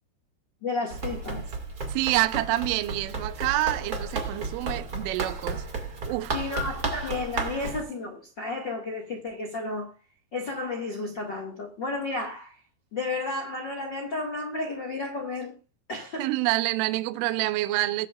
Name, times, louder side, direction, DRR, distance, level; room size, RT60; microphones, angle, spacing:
voice 1, 0.6-1.5 6.3-9.9 10.3-12.6 12.9-15.5 15.9-16.3, left 3 dB, 70° left, 1.1 m, -32 dB
Run, 0.9-7.8, right 3 dB, 45° right, 1.1 m, -33 dB
voice 2, 1.9-5.6 6.1-6.4 16.2-18.1, right 17 dB, 80° right, 3.2 m, -27 dB
22.0 x 8.0 x 2.5 m
omnidirectional pair, 5.7 m